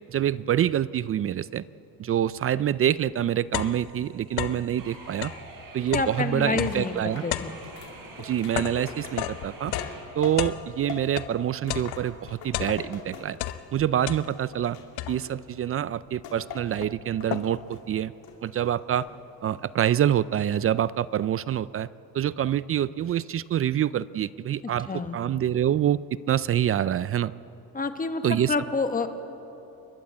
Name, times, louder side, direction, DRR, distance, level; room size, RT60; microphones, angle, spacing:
voice 1, 0.1-1.6 2.0-5.3 5.7-7.2 8.2-9.7 10.2-13.4 13.7-14.8 15.1-18.1 18.4-19.1 19.4-21.9 22.1-26.0 26.3-27.3 28.2-28.5, right 10 dB, 40° right, 18 dB, 0.4 m, -26 dB
sound 1, 2.6-2.7 3.1-4.7 5.1-11.4 11.7-13.1 13.3-14.6 15.0-15.5 16.1-16.2 16.5-17.8, left 13 dB, 85° left, 0.9 m, -34 dB
sound 2, 4.8-10.0, right 3 dB, 60° right, 4.6 m, -45 dB
voice 2, 5.9-7.5 24.6-25.2 27.7-29.1, left 4 dB, 20° left, 8 dB, 1.3 m, -28 dB
sound 3, 6.7-10.6 10.9-13.7 14.0-15.6 16.2-16.8 17.2-17.8 18.2-19.1 19.5-19.9, left 6 dB, 70° left, 3.1 m, -43 dB
29.0 x 12.0 x 8.4 m, 2.9 s
cardioid pair, 120°, 38 cm